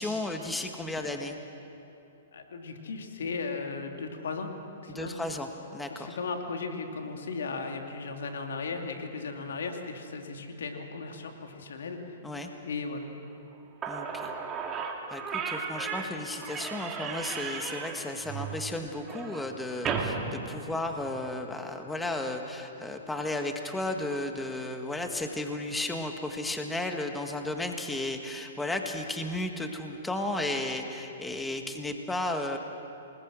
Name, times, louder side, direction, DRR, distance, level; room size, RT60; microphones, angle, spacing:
voice 1, 0.0-1.4 4.9-6.2 12.2-12.5 13.9-14.3 15.1-32.6, left 2 dB, 5° left, 4 dB, 1.7 m, -34 dB
voice 2, 2.3-4.5 4.8-5.2 5.9-12.2 12.6-13.1 31.6-31.8, left 4 dB, 75° left, 3 dB, 2.6 m, -36 dB
Slam / Squeak, 13.5-13.6 13.8-21.3, right 5 dB, 20° right, 2.4 m, -35 dB
28.0 x 20.5 x 6.3 m, 2.8 s
hypercardioid pair, 125°, 0 cm